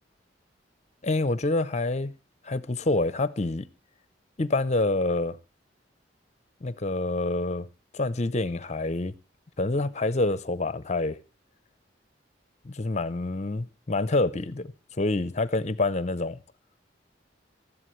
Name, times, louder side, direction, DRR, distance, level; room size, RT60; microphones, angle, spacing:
voice 1, 1.0-2.1 2.4-3.7 4.4-5.4 6.6-7.7 7.9-9.1 9.6-11.2 12.6-14.7 15.0-16.4, left 2 dB, 35° left, 0.7 m, -27 dB
19.0 x 14.0 x 3.2 m
head